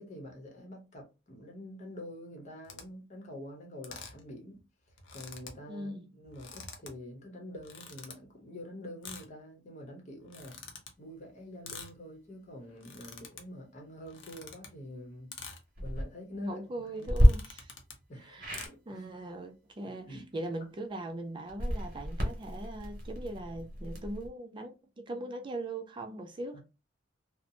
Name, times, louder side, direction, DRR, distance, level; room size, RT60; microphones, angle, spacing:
voice 1, 0.0-4.6 5.1-10.6 11.0-15.3 15.8-16.6 16.9-17.1 18.1-19.1 19.8-20.3 26.5-26.6, equal, 40° left, 0.8 m, -46 dB
sound 1, 2.6-2.8 3.8-4.2 4.6-4.7 4.9-5.6 6.2-6.9 7.6-8.1 9.0-9.3 10.2-10.9 11.6-11.9 12.7-13.4 14.0-14.7 15.3-15.6 16.3-16.5 17.0-18.0 18.5-18.7, left 5 dB, 85° left, 0.6 m, -46 dB
voice 2, 5.7-6.1 16.4-17.8 18.2-26.6, right 1 dB, 25° right, 0.3 m, -40 dB
sound 2, 15.7-16.0 17.1-17.3 18.4-18.7 21.5-24.3, equal, 50° right, 1.2 m, -28 dB
2.9 x 2.0 x 2.6 m
head